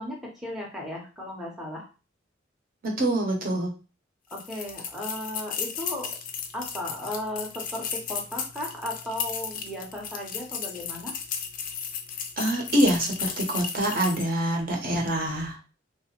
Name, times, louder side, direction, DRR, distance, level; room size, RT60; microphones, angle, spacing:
voice 1, 0.0-1.9 4.3-6.2 6.5-11.1, left 1 dB, ahead, -3 dB, 0.6 m, -35 dB
voice 2, 2.8-3.7 12.4-15.7, right 1 dB, 50° right, 1 dB, 0.7 m, -25 dB
sound 1, 4.3-14.4, left 7 dB, 45° left, 0.4 m, -34 dB
2.7 x 2.0 x 2.8 m, 0.33 s
head